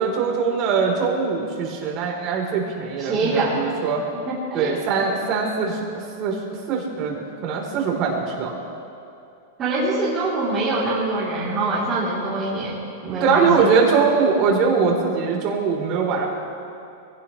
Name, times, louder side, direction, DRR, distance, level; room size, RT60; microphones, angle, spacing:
voice 1, 0.0-4.0 4.5-5.8 6.2-6.4 6.7-8.6 13.2-16.3, right 5 dB, 45° right, -1 dB, 3.9 m, -22 dB
voice 2, 3.0-3.6 4.1-4.8 9.6-13.7, right 2 dB, 30° right, -9 dB, 3.4 m, -24 dB
23.0 x 17.5 x 3.3 m, 2.7 s
hypercardioid pair, 125°, 0 cm